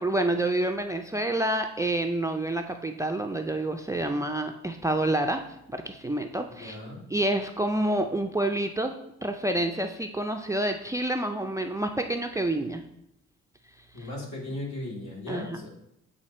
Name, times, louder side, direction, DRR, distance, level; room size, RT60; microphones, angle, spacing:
voice 1, 0.0-6.8 7.1-12.8 14.0-14.1 15.3-15.6, right 1 dB, 10° right, 6 dB, 0.4 m, -28 dB
voice 2, 6.6-7.0 13.9-15.7, left 1 dB, 70° left, -3 dB, 2.3 m, -37 dB
8.2 x 2.8 x 4.2 m, 0.79 s
cardioid pair, 90°, 30 cm